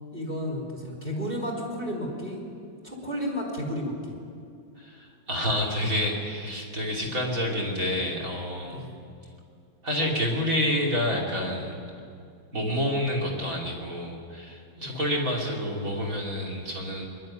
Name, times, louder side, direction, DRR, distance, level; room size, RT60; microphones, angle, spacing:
voice 1, 0.1-2.4 2.8-4.1 8.7-8.9 14.8-15.0, equal, 20° right, -1 dB, 3.9 m, -32 dB
voice 2, 4.8-8.8 9.8-11.9 12.5-17.1, left 1 dB, 45° right, 0 dB, 3.5 m, -28 dB
23.0 x 11.5 x 9.8 m, 2.5 s
omnidirectional pair, 2.1 m